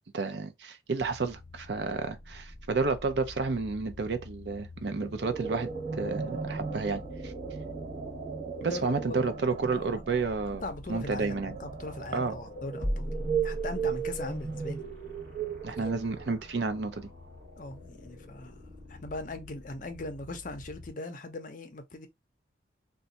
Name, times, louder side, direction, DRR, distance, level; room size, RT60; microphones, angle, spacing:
voice 1, 0.1-7.3 8.6-11.5 12.1-12.4 15.6-17.1, right 4 dB, 65° right, 0.5 m, -31 dB
sound 1, 1.0-20.9, left 1 dB, 50° right, 1.3 m, -44 dB
sound 2, 5.0-16.3, right 6 dB, 35° right, 1.0 m, -36 dB
voice 2, 8.6-10.1 10.5-14.8 15.7-15.9 17.6-22.1, left 2 dB, 45° left, 0.6 m, -40 dB
2.6 x 2.3 x 3.9 m
head